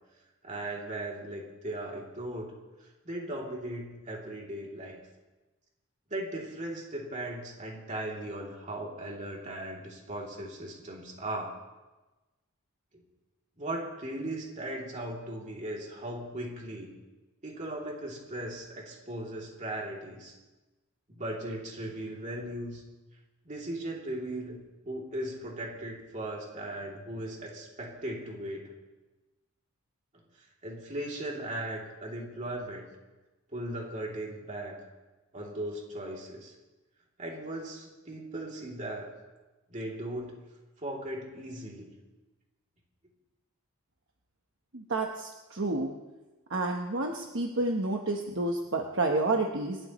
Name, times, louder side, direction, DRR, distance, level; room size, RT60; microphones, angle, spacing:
voice 1, 0.4-2.5 2.8-5.0 6.1-11.5 12.9-13.0 13.6-16.9 17.4-20.3 21.1-22.8 23.4-28.7 30.6-32.8 33.5-34.9 35.3-36.5 37.2-39.1 39.7-40.4 40.8-41.9, right 1 dB, 35° right, -2 dB, 2.9 m, -38 dB
voice 2, 44.7-45.9 46.5-49.8, right 2 dB, 55° right, 2 dB, 1.1 m, -30 dB
27.5 x 12.5 x 3.1 m, 1.2 s
head